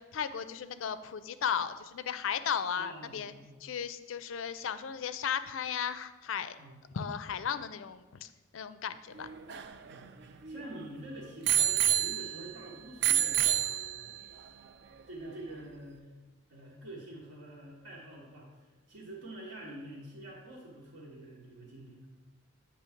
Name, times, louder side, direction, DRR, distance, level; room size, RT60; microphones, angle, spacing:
voice 1, 0.0-3.3 3.6-6.6 6.9-9.3, left 7 dB, 65° left, 13 dB, 0.4 m, -35 dB
voice 2, 2.7-3.5 6.6-6.8 9.9-14.1 15.1-16.1 16.5-22.0, right 1 dB, 80° right, -7 dB, 1.3 m, -47 dB
Bicycle bell, 9.2-10.8 11.5-12.6 13.0-14.3 15.0-15.1, right 11 dB, 55° right, 0.3 m, -29 dB
8.4 x 3.1 x 5.7 m, 1.2 s
head